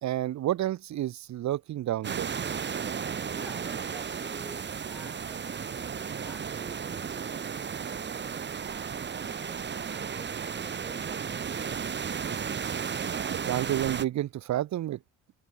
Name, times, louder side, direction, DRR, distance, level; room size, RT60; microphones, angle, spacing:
voice 1, 0.0-2.3 13.1-15.0, right 13 dB, 65° right, 1.0 m, -30 dB
sound 1, 2.0-14.0, right 7 dB, 35° right, 1.3 m, -34 dB
voice 2, 3.3-11.7, equal, ahead, 3.8 m, -51 dB
cardioid pair, 90°, 30 cm